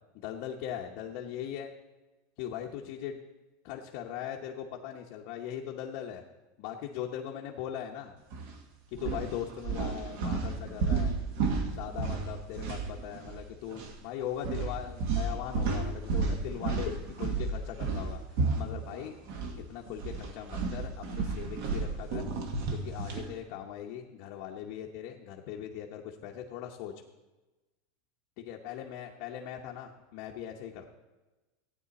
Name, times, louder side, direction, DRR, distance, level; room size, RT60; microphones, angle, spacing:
voice 1, 0.1-1.7 2.4-3.2 3.6-6.2 6.6-8.2 8.9-11.1 11.8-18.2 18.6-19.1 19.6-22.3 22.7-26.9 28.4-30.9, left 10 dB, 45° left, 0 dB, 0.8 m, -40 dB
sound 1, 8.3-8.5 8.9-13.4 13.7-13.9 14.4-19.5 19.9-23.3, right 4 dB, 55° right, 1.5 m, -32 dB
15.5 x 9.2 x 4.1 m, 1.1 s
supercardioid pair, 175°, 0 cm